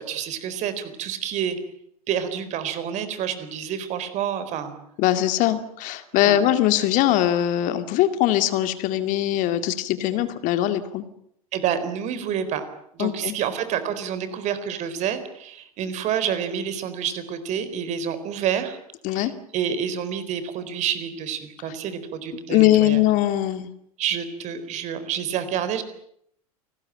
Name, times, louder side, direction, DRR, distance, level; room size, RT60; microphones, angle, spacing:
voice 1, 0.0-1.6 2.1-4.8 6.2-6.4 11.5-12.6 12.9-18.8 19.1-23.0 24.0-25.8, right 8 dB, 40° right, 12 dB, 4.1 m, -28 dB
voice 2, 5.0-11.0 13.0-13.3 19.0-19.3 22.5-23.7, left 13 dB, 40° left, 10 dB, 2.2 m, -21 dB
29.0 x 19.5 x 9.0 m, 0.71 s
figure-of-eight pair, 85°, 19 cm